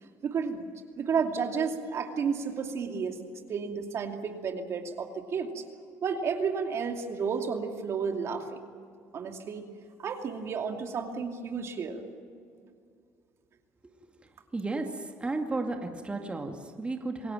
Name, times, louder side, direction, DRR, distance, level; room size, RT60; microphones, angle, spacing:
voice 1, 0.2-0.6 1.0-3.2 3.5-5.6 6.0-8.6 9.1-9.7 10.0-12.0, right 6 dB, 50° right, 4 dB, 2.6 m, -32 dB
voice 2, 14.5-17.3, right 3 dB, 20° right, 3 dB, 2.3 m, -33 dB
27.0 x 17.0 x 9.1 m, 2.3 s
cardioid pair, 95°, 6 cm